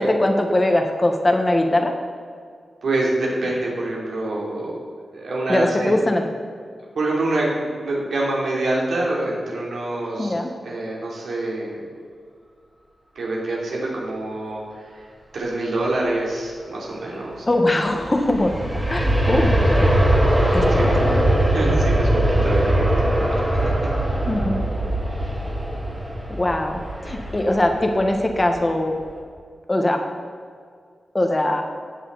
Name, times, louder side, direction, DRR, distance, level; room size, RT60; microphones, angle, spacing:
voice 1, 0.0-1.9 5.5-6.2 10.2-10.5 17.5-18.5 18.9-19.9 20.5-20.8 21.1-21.2 24.3-24.6 26.3-28.9 29.7-30.0 31.1-31.6, left 1 dB, 20° left, 4 dB, 1.3 m, -21 dB
voice 2, 2.8-6.0 6.9-10.3 10.6-11.8 13.1-15.0 15.3-17.4 20.7-21.0 21.5-23.3, right 2 dB, 85° right, -4 dB, 3.1 m, -26 dB
Aircraft, 17.8-28.6 29.1-29.2, right 1 dB, 15° right, 2.1 m, -21 dB
15.5 x 8.9 x 4.0 m, 2.1 s
wide cardioid pair, 135°, 0 cm